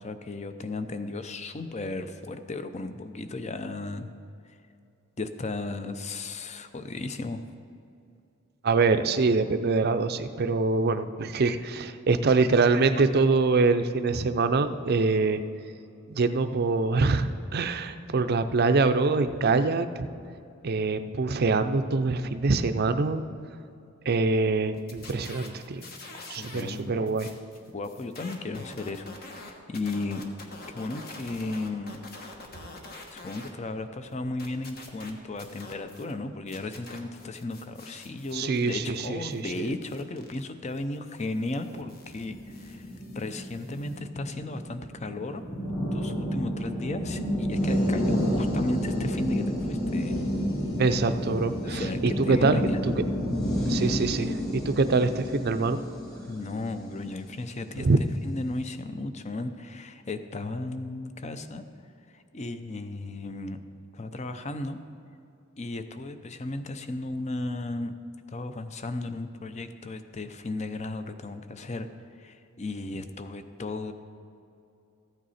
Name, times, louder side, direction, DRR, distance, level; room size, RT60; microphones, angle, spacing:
voice 1, 0.0-4.1 5.2-7.4 26.1-27.1 27.7-30.3 30.7-32.0 33.1-42.8 43.1-45.4 45.9-50.2 51.6-52.8 56.3-57.9 58.2-61.6 62.1-63.6 63.9-64.8 65.6-67.9 68.3-71.9 72.2-73.9, left 2 dB, 35° left, 10 dB, 0.6 m, -35 dB
voice 2, 8.6-15.4 16.1-20.1 20.6-23.2 24.1-25.8 26.3-27.3 38.3-39.5 50.8-52.6 53.7-55.8 57.8-58.0, right 3 dB, 50° right, 10 dB, 0.5 m, -24 dB
sound 1, 24.7-26.8 27.1-33.5 33.8-36.1 36.5-44.0, left 2 dB, 50° left, 1.2 m, -46 dB
sound 2, 42.3-57.6, equal, 70° left, 2.1 m, -30 dB
14.5 x 9.2 x 4.2 m, 2.6 s
head